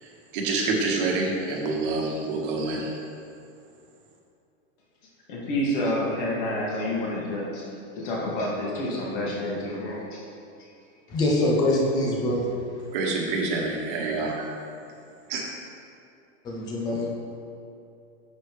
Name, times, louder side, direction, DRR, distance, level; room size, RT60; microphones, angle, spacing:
voice 1, 0.0-3.0 12.9-14.5 15.3-15.5, right 3 dB, 40° right, -1 dB, 1.4 m, -27 dB
voice 2, 5.3-7.7 8.0-10.2, left 1 dB, 40° left, -4 dB, 1.9 m, -28 dB
voice 3, 11.1-12.6 16.4-17.1, left 1 dB, 10° left, -2 dB, 0.5 m, -24 dB
9.2 x 7.0 x 3.1 m, 2.6 s
supercardioid pair, 170°, 38 cm